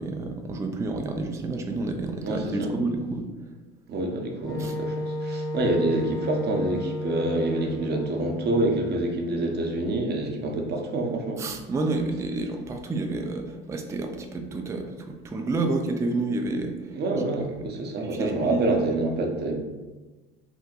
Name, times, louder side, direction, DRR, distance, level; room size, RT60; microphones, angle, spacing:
voice 1, 0.0-3.3 4.6-4.8 11.4-16.9 18.0-18.8, right 2 dB, 10° right, 4 dB, 0.3 m, -29 dB
voice 2, 2.2-2.7 3.9-11.4 16.9-19.5, right 2 dB, 35° right, 1 dB, 0.7 m, -27 dB
Wind instrument woodwind instrument, 4.4-9.1, left 1 dB, 10° left, 0.9 m, -33 dB
2.6 x 2.1 x 3.7 m, 1.2 s
hypercardioid pair, 65°, 30 cm